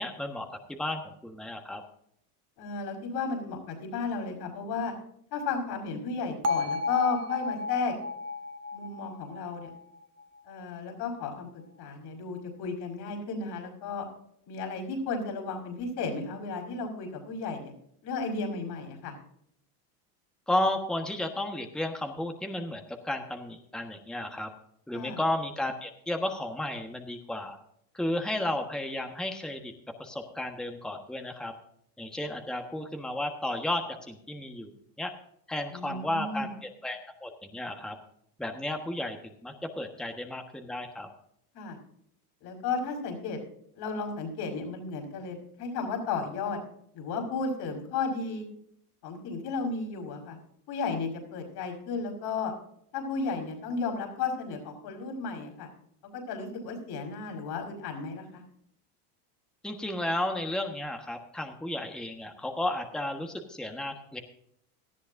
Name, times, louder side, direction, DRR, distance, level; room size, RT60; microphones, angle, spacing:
voice 1, 0.0-1.8 20.5-24.5 24.9-27.6 27.9-29.7 30.0-31.5 32.0-34.7 35.0-35.1 35.5-37.9 38.4-41.1 59.6-64.2, left 1 dB, ahead, 4 dB, 1.4 m, -33 dB
voice 2, 2.6-4.9 5.3-7.9 8.7-9.7 10.5-14.1 14.5-17.7 18.0-19.1 24.9-25.2 35.7-36.5 41.5-41.8 42.4-43.4 43.8-46.6 46.9-48.5 49.0-50.4 50.7-52.5 52.9-55.7 56.1-58.4, left 4 dB, 55° left, 3 dB, 5.2 m, -34 dB
Bell, 6.4-10.5, left 3 dB, 30° right, 1.4 m, -33 dB
18.0 x 13.0 x 2.6 m, 0.71 s
supercardioid pair, 105°, 48 cm